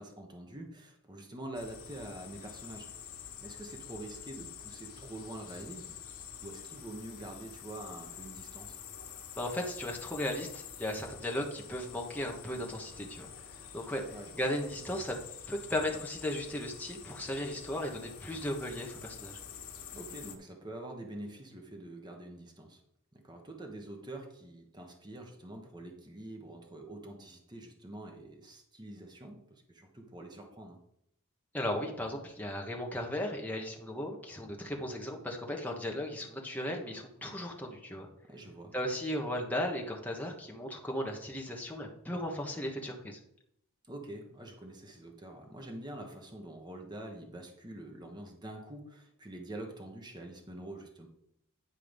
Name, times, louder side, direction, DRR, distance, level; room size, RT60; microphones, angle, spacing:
voice 1, 0.0-5.9 6.4-8.8 14.1-14.4 19.9-22.8 23.1-30.8 38.3-38.7 43.9-51.1, right 1 dB, 20° right, 3 dB, 1.2 m, -46 dB
sound 1, 1.5-20.4, left 8 dB, 85° left, 1.3 m, -48 dB
voice 2, 9.4-13.3 13.7-14.0 14.3-15.2 15.5-19.4 31.5-38.1 38.7-43.2, left 1 dB, 5° left, 1 dB, 1.3 m, -36 dB
10.0 x 4.7 x 5.3 m, 0.76 s
head